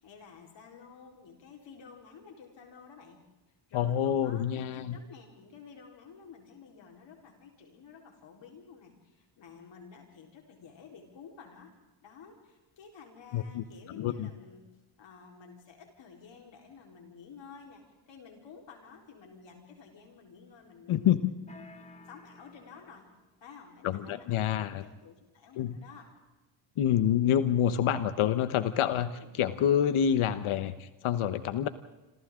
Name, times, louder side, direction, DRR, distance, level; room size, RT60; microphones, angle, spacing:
voice 1, 0.0-3.2 3.7-11.7 12.0-14.7 15.0-21.7 22.1-23.1 23.4-24.4 24.7-26.1 29.1-29.3, left 6 dB, 60° left, 1 dB, 4.2 m, -52 dB
voice 2, 3.7-5.0 13.3-14.3 20.9-21.2 23.8-24.8 25.6-25.8 26.8-29.1 29.4-31.7, left 9 dB, 85° left, 11 dB, 1.2 m, -27 dB
sound 1, 21.5-23.4, left 2 dB, 15° left, 1.7 m, -53 dB
28.0 x 27.0 x 3.8 m, 1.1 s
cardioid pair, 165°, 49 cm